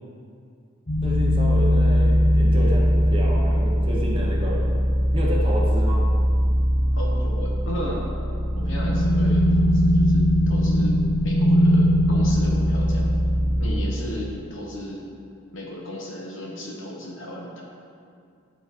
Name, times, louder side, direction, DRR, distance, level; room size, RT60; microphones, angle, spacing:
sound 1, 0.9-13.7, equal, 40° left, 1.2 m, -20 dB
voice 1, 1.0-4.6 5.1-6.1, equal, 25° right, -4 dB, 1.0 m, -30 dB
voice 2, 6.9-8.0 8.5-11.0 11.2-13.0 13.6-15.0 15.5-17.6, left 1 dB, 65° left, -3 dB, 1.4 m, -35 dB
11.0 x 4.0 x 4.5 m, 2.4 s
head